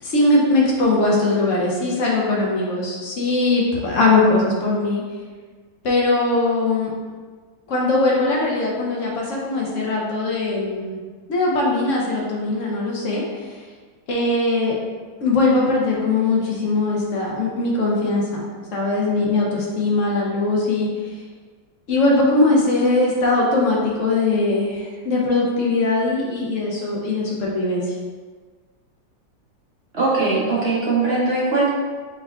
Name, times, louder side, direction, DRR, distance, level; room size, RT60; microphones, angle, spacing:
voice 1, 0.0-5.0 5.8-6.9 7.7-11.0 11.3-13.2 14.1-14.8 15.2-18.4 18.7-20.9 21.9-27.8, left 2 dB, 65° left, -3 dB, 0.8 m, -20 dB
voice 2, 29.9-31.7, right 3 dB, 65° right, -7 dB, 0.6 m, -20 dB
4.4 x 3.9 x 2.3 m, 1.5 s
omnidirectional pair, 2.0 m